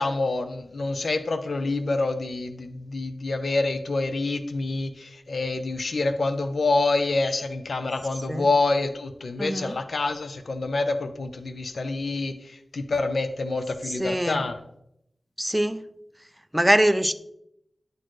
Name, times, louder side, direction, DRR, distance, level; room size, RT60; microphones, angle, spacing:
voice 1, 0.0-14.6, left 3 dB, 65° left, 8 dB, 0.6 m, -27 dB
voice 2, 9.4-9.7 13.9-14.4 15.4-15.8 16.5-17.1, right 1 dB, 5° right, 10 dB, 0.4 m, -23 dB
9.9 x 4.3 x 3.1 m, 0.77 s
wide cardioid pair, 95°, 0 cm